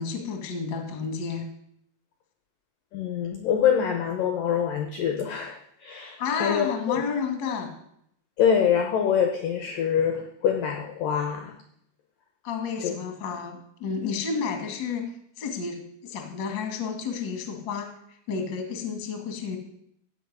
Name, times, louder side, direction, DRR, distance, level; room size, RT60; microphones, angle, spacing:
voice 1, 0.0-1.5 6.2-7.7 12.4-15.1 15.4-17.9 18.3-19.6, left 5 dB, 45° left, 4 dB, 1.6 m, -31 dB
voice 2, 2.9-7.0 8.4-11.6 12.8-12.9, left 8 dB, 75° left, 4 dB, 2.0 m, -25 dB
15.5 x 5.6 x 9.4 m, 0.73 s
omnidirectional pair, 5.5 m